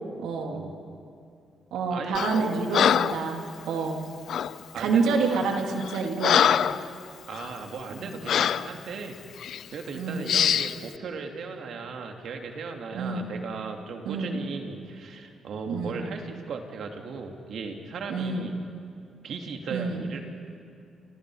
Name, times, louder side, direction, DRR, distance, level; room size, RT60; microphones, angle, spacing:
voice 1, 0.2-0.6 1.7-4.0 4.8-6.6 8.0-8.2 9.9-10.3 12.9-13.3 14.0-14.4 15.7-16.0 18.1-18.5 19.7-20.1, right 4 dB, 85° right, 2 dB, 3.2 m, -28 dB
voice 2, 1.9-2.6 4.7-5.5 7.3-9.2 9.7-18.5 19.2-20.2, right 4 dB, 70° right, 3 dB, 2.8 m, -37 dB
Breathing, 2.1-2.4 2.7-3.2 4.3-4.6 5.2-5.4 5.8-6.9 7.3-7.5 8.3-8.7 9.4-9.6 10.3-10.8, left 9 dB, 70° left, 0.6 m, -23 dB
29.5 x 28.0 x 5.0 m, 2.5 s
cardioid pair, 75°, 0 cm